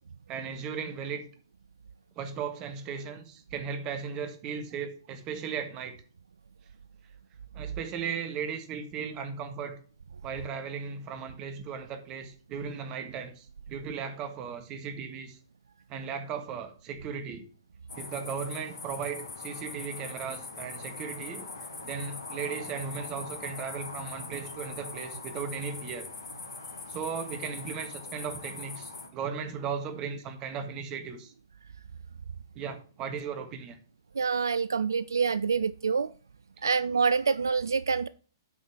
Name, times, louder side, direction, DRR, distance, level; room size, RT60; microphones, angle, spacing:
voice 1, 0.3-1.2 2.1-6.0 7.5-9.8 10.2-15.4 15.9-17.5 17.9-21.5 21.8-26.1 26.9-31.3 32.5-33.8 36.6-36.7, right 6 dB, 30° right, 1.5 m, -36 dB
sound 1, 17.9-29.1, left 3 dB, 70° left, 1.7 m, -42 dB
voice 2, 34.1-36.1 36.6-38.1, right 5 dB, 75° right, 0.3 m, -26 dB
8.5 x 5.5 x 4.6 m
figure-of-eight pair, 115°, 2 cm